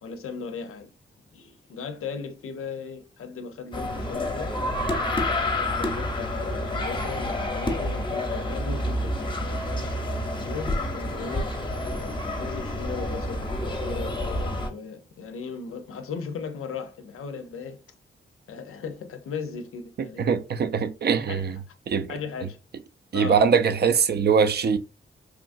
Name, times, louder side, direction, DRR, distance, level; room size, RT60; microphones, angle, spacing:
voice 1, 0.0-0.9 1.3-4.5 5.6-9.5 9.8-10.0 10.4-11.5 12.4-13.6 13.8-17.8 18.5-20.3 21.3-21.7 22.1-22.6 23.1-23.5, left 5 dB, 85° left, 0.5 m, -37 dB
sound 1, 3.7-14.7, left 1 dB, 25° left, 0.7 m, -28 dB
voice 2, 20.2-21.6 21.9-22.1 23.1-24.8, right 6 dB, 50° right, 0.4 m, -22 dB
3.0 x 2.4 x 2.4 m
cardioid pair, 75°, 21 cm